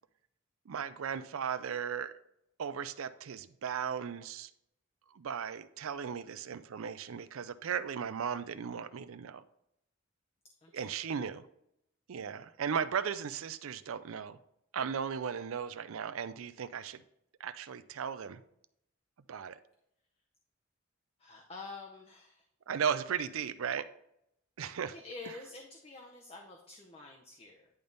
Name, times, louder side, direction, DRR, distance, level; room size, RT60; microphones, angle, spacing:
voice 1, 0.7-2.1 2.6-4.5 5.1-9.4 10.7-11.5 12.1-14.4 14.7-17.0 17.4-18.4 19.3-19.6 22.7-23.9 24.6-25.0, right 7 dB, 80° right, 13 dB, 0.5 m, -36 dB
voice 2, 10.6-11.2 21.2-22.4 24.9-27.7, left 3 dB, 30° left, 1 dB, 0.6 m, -48 dB
10.5 x 3.4 x 4.0 m, 0.77 s
head